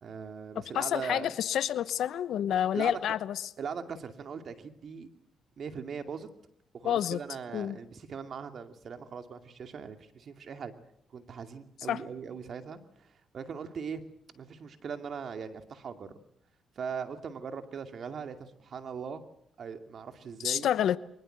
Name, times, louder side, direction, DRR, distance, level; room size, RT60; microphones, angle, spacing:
voice 1, 0.0-1.3 2.7-3.0 3.6-5.1 5.6-6.3 6.7-10.7 11.1-14.0 14.3-16.2 16.8-19.2 19.6-20.7, right 6 dB, 55° right, 2.4 m, -40 dB
voice 2, 0.7-3.4 6.8-7.2 7.5-7.8 11.9-12.0 20.4-21.0, left 10 dB, 75° left, 1.0 m, -28 dB
23.5 x 20.5 x 7.9 m
cardioid pair, 90°, 0 cm